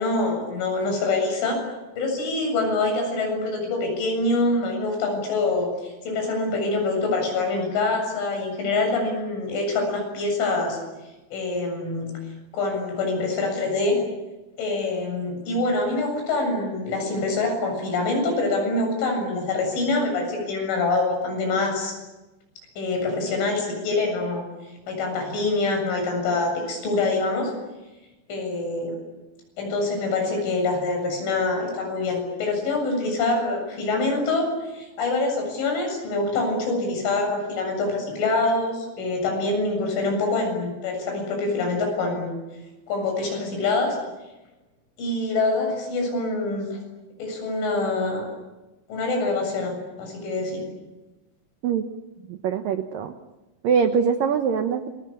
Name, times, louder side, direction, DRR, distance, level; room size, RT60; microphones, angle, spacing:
voice 1, 0.0-1.6 2.0-10.8 11.3-12.1 12.5-14.0 14.6-21.9 22.8-24.4 24.9-27.5 28.3-28.9 29.6-34.5 34.7-42.3 42.9-44.0 45.0-46.8 47.2-48.3 48.9-50.6, left 3 dB, 70° left, 3 dB, 9.9 m, -25 dB
voice 2, 52.3-53.1 53.6-54.9, right 6 dB, 90° right, 7 dB, 1.9 m, -23 dB
28.5 x 23.0 x 8.7 m, 1.1 s
omnidirectional pair, 5.8 m